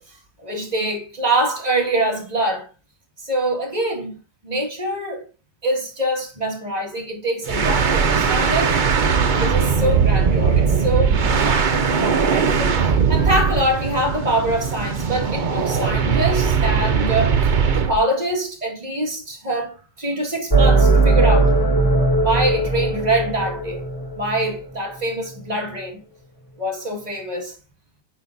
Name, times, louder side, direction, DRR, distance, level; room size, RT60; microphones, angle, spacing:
voice 1, 0.0-2.7 3.2-5.3 5.6-8.8 9.3-12.8 13.1-21.6 22.2-23.8 24.1-26.0 26.6-27.6, right 1 dB, 20° right, 1.9 m, -24 dB
sound 1, 7.5-18.0, right 6 dB, 85° right, 0.4 m, -19 dB
sound 2, 20.5-24.5, right 3 dB, 15° left, 0.7 m, -18 dB
8.7 x 5.0 x 2.7 m
omnidirectional pair, 2.1 m